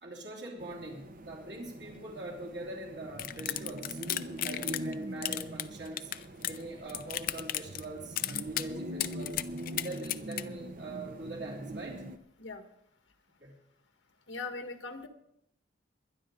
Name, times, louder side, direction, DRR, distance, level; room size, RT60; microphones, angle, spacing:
voice 1, 0.0-4.0 4.4-6.1 6.5-9.4 9.8-12.0 13.4-13.6, right 1 dB, 65° right, -3 dB, 3.1 m, -42 dB
sound 1, 0.6-12.2, right 1 dB, 45° right, 0.8 m, -43 dB
sound 2, 3.2-4.9 5.2-6.6 6.9-7.8 8.2-8.7 9.0-10.4, left 12 dB, 50° left, 0.5 m, -34 dB
voice 2, 14.3-15.1, left 3 dB, 85° left, 6 dB, 1.7 m, -40 dB
22.5 x 10.5 x 3.8 m, 0.75 s
head